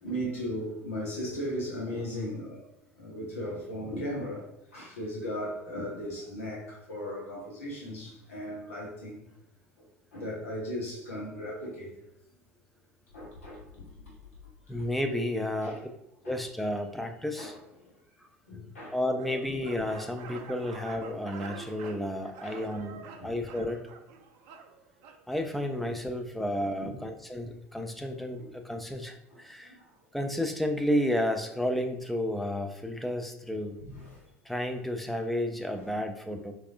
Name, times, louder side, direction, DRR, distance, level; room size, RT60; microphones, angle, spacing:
voice 1, 0.0-2.7 3.0-9.3 9.8-9.9 10.1-11.9 13.1-13.9 14.7-14.8 15.6-15.8 16.2-16.4 17.4-17.5 18.5-19.0 19.9-20.0 22.4-22.6 23.2-23.3 26.8-27.0 28.4-28.5 29.3-29.8 33.8-34.2 35.7-35.8, equal, 70° left, 0.9 m, -37 dB
voice 2, 14.7-15.8 16.3-17.5 18.9-23.9 25.3-29.7 30.1-33.8 34.5-36.5, left 1 dB, ahead, 0.5 m, -32 dB
sound 1, 19.2-25.2, right 5 dB, 50° right, 0.5 m, -47 dB
4.7 x 2.5 x 2.5 m
figure-of-eight pair, 70°, 7 cm